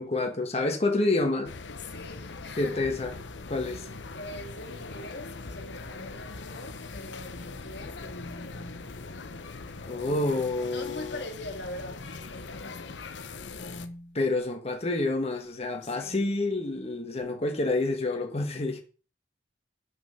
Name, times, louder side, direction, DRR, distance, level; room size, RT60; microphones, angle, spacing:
voice 1, 0.0-1.5 2.6-3.1 3.5-3.9 9.9-11.2 14.1-18.8, left 2 dB, 35° left, 1.4 m, -28 dB
sound 1, 1.5-13.9, left 3 dB, 90° left, 0.9 m, -41 dB
voice 2, 1.8-2.9 4.1-9.1 10.0-13.1 13.6-14.2 15.8-16.3, left 1 dB, 70° left, 2.1 m, -43 dB
7.7 x 6.1 x 6.6 m
head